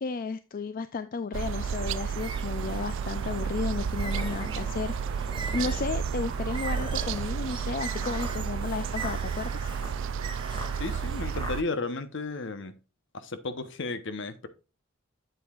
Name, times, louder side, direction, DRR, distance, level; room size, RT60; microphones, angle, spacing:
voice 1, 0.0-9.7, left 4 dB, 45° left, 0.4 m, -33 dB
sound 1, 1.3-2.1 2.7-2.8 3.8-4.5 5.2-5.9 6.6-11.6, equal, 20° left, 2.3 m, -42 dB
sound 2, 1.3-11.6, right 7 dB, 65° right, 0.3 m, -32 dB
Bird, 2.1-11.2, right 4 dB, 25° right, 1.1 m, -41 dB
voice 2, 10.7-12.7 13.1-14.5, left 3 dB, 60° left, 1.0 m, -34 dB
8.2 x 7.9 x 2.4 m
head